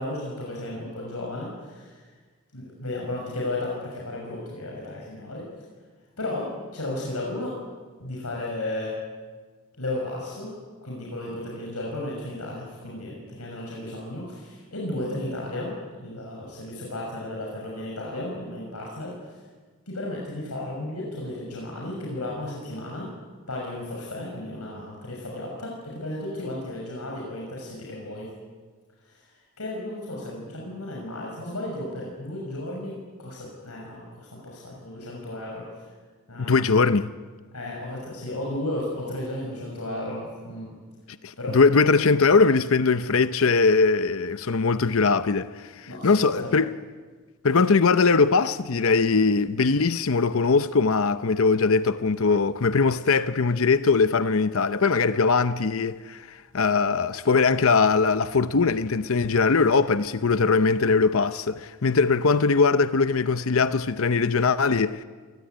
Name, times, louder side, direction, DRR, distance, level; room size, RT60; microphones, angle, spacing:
voice 1, 0.0-2.1 2.5-5.5 6.2-7.6 8.0-9.0 9.8-10.5 10.8-19.4 19.9-23.1 23.5-28.3 29.0-35.9 36.3-36.6 37.5-40.7 41.4-41.6 42.0-42.1 45.9-46.5, left 1 dB, 85° left, 6.4 m, -34 dB
voice 2, 36.4-37.1 41.2-46.7 47.4-65.0, left 4 dB, 65° left, 0.7 m, -21 dB
27.5 x 19.0 x 9.4 m
head